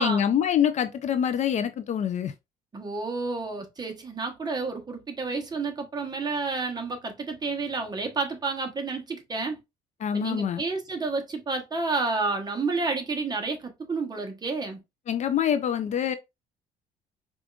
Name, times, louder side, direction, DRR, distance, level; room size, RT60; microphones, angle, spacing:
voice 1, 0.0-2.3 10.0-10.6 15.1-16.1, left 9 dB, 45° left, 0.4 m, -25 dB
voice 2, 2.7-9.6 10.1-14.8, right 3 dB, 25° right, 1.0 m, -30 dB
4.9 x 2.5 x 2.3 m
cardioid pair, 110°, 17 cm